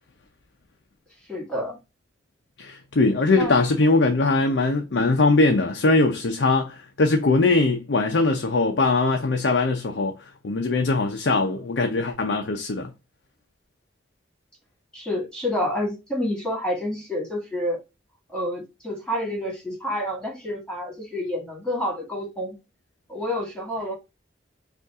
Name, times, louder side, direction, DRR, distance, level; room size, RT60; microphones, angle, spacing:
voice 1, 1.3-1.8 3.3-3.5 14.9-17.8 18.3-22.6 23.1-24.0, left 1 dB, 5° left, 2.0 m, -28 dB
voice 2, 2.6-12.9, left 3 dB, 85° left, 0.6 m, -21 dB
5.4 x 2.6 x 3.6 m
head